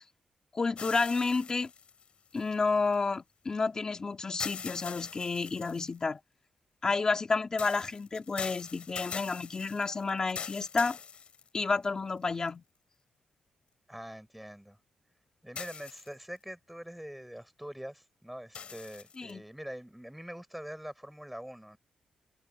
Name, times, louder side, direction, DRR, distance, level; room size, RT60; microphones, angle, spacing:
voice 1, 0.5-1.7 2.3-6.2 6.8-11.0 11.5-12.6 19.2-19.4, left 4 dB, 35° left, 2.7 m, -30 dB
sound 1, 0.8-2.9 4.4-6.0 7.6-11.9 12.5-12.6 15.6-16.4 18.5-19.3, left 7 dB, 60° left, 7.0 m, -43 dB
voice 2, 13.9-14.8 15.4-21.8, equal, 5° right, 7.0 m, -44 dB
wide cardioid pair, 120°, 2 cm